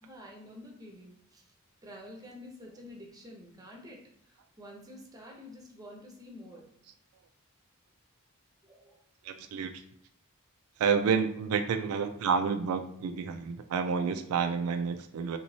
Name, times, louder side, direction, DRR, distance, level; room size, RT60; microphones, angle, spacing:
voice 1, 0.0-1.5 1.8-6.7 8.6-9.0, left 1 dB, 15° right, 0 dB, 0.6 m, -49 dB
voice 2, 9.2-9.7 10.8-15.4, right 6 dB, 80° right, 7 dB, 0.3 m, -29 dB
3.1 x 3.0 x 2.6 m, 0.73 s
head